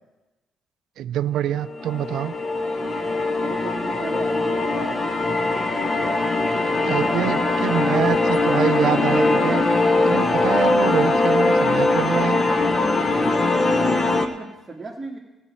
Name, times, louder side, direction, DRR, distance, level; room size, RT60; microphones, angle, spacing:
voice 1, 1.0-2.3 6.8-9.6 10.1-12.4, right 11 dB, 80° right, 16 dB, 0.4 m, -25 dB
sound 1, 1.5-14.3, left 2 dB, 35° left, 1.0 m, -21 dB
voice 2, 3.4-5.8 6.6-7.6 13.5-15.2, right 3 dB, 20° right, -6 dB, 1.8 m, -35 dB
15.0 x 5.1 x 9.5 m, 1.1 s
cardioid pair, 90°, 0 cm